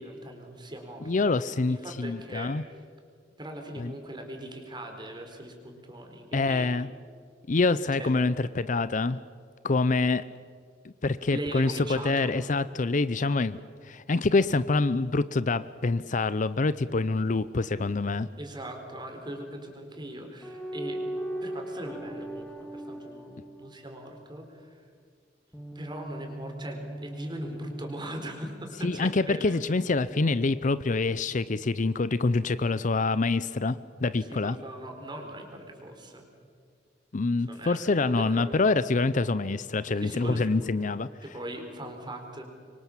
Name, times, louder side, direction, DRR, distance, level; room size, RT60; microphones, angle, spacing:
voice 1, 0.0-1.1 1.7-2.5 3.4-6.7 7.9-8.1 11.3-12.3 18.4-21.0 21.4-24.9 25.7-29.6 34.2-36.3 37.4-38.7 40.0-40.7 41.2-42.4, right 1 dB, 25° right, 4 dB, 4.1 m, -40 dB
voice 2, 1.1-2.6 3.8-3.9 6.3-6.9 7.5-9.2 9.6-10.2 10.8-13.6 13.8-18.3 28.8-34.6 37.1-41.1, left 3 dB, 40° left, 15 dB, 0.6 m, -26 dB
sound 1, 20.4-24.1 25.5-29.3 30.1-31.3, right 1 dB, 5° left, 2.1 m, -39 dB
25.5 x 24.0 x 7.4 m, 2.1 s
head